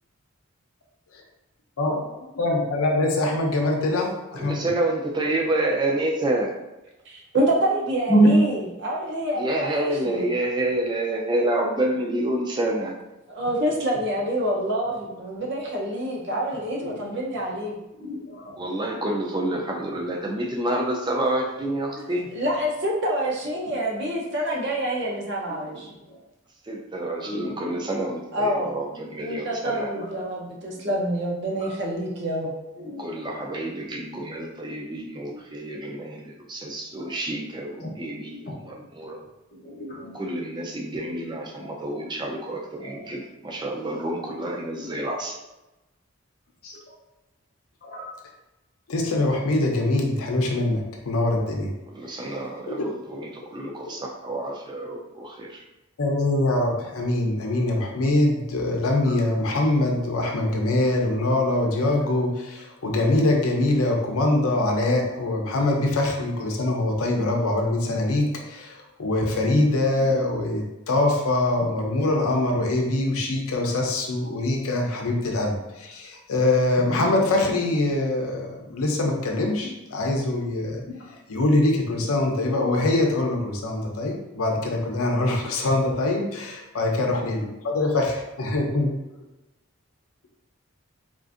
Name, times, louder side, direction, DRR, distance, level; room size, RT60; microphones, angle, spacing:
voice 1, 2.4-4.6 48.9-51.7 52.1-52.3 56.0-80.8 81.3-87.4 87.7-88.9, left 2 dB, 85° left, 1 dB, 0.6 m, -23 dB
voice 2, 4.3-6.5 9.3-12.9 18.6-22.3 26.6-29.9 33.0-39.2 40.1-45.4 51.9-55.6, right 1 dB, 20° right, 0 dB, 0.4 m, -28 dB
voice 3, 7.1-10.3 13.3-17.7 22.3-26.0 28.3-28.7 29.2-32.5, right 1 dB, 50° right, -2 dB, 0.7 m, -27 dB
voice 4, 8.1-8.4 16.8-17.1 18.0-18.6 21.9-22.1 23.6-23.8 25.5-25.8 26.1-26.2 27.2-27.8 29.9-30.2 30.7-30.8 31.6-31.7 32.8-33.5 35.1-35.4 37.8-37.9 38.3-38.9 39.5-40.2 41.6-42.0 42.8-43.1 44.2-44.3 46.6-46.8 47.8-48.1 57.6-57.7 59.0-59.2 76.8-77.2 81.1-81.2 82.0-82.2, right 1 dB, 45° left, -3 dB, 0.7 m, -28 dB
3.7 x 2.5 x 2.5 m, 1.0 s
head